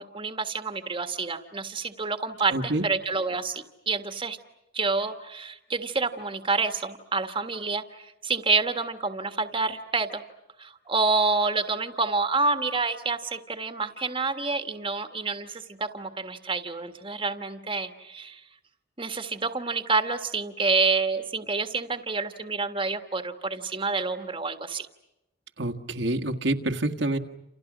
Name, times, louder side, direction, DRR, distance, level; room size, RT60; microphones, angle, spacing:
voice 1, 0.0-4.4 4.7-10.2 10.6-18.4 19.0-24.9, right 4 dB, 25° right, 7 dB, 1.6 m, -28 dB
voice 2, 2.5-2.8 25.6-27.2, right 1 dB, 65° right, 5 dB, 1.6 m, -27 dB
29.0 x 29.0 x 6.2 m, 0.92 s
head